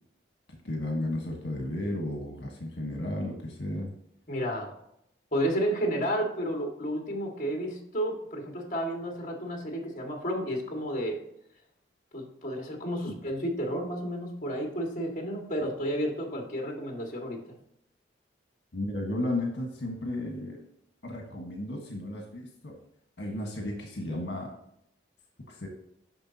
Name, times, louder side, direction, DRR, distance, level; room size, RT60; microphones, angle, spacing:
voice 1, 0.6-3.9 13.1-13.2 18.7-20.6 21.0-22.8 23.2-24.5 25.5-25.7, left 1 dB, 75° left, 1 dB, 1.5 m, -33 dB
voice 2, 4.3-4.8 5.3-11.2 12.1-17.4, equal, 40° left, 0 dB, 1.9 m, -31 dB
10.0 x 6.2 x 2.8 m, 0.74 s
head